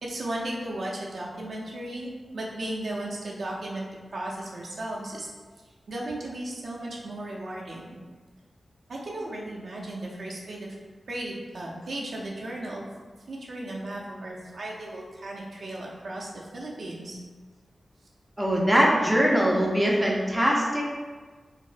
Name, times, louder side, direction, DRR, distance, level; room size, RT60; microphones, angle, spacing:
voice 1, 0.0-5.3 5.9-8.0 8.9-10.8 11.1-12.8 13.3-17.2, right 1 dB, 70° right, -3 dB, 0.5 m, -35 dB
voice 2, 18.4-20.8, equal, 10° right, -3 dB, 0.5 m, -22 dB
4.1 x 2.0 x 2.5 m, 1.4 s
wide cardioid pair, 95°, 0 cm